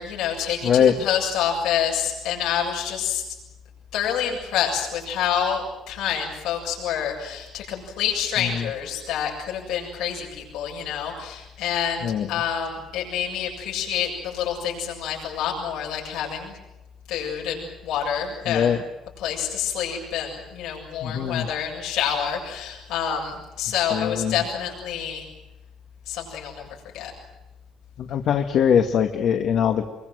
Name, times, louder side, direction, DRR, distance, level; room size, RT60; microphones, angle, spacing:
voice 1, 0.0-3.2 3.9-16.5 17.1-18.7 19.2-25.3 26.1-26.7 26.9-27.1, left 8 dB, 85° left, -1 dB, 7.7 m, -27 dB
voice 2, 0.6-0.9 8.4-8.6 12.0-12.3 18.5-18.8 21.0-21.5 23.9-24.4 28.0-29.9, left 8 dB, 60° left, 5 dB, 1.8 m, -21 dB
26.0 x 23.5 x 8.0 m, 1.0 s
cardioid pair, 145°, 0 cm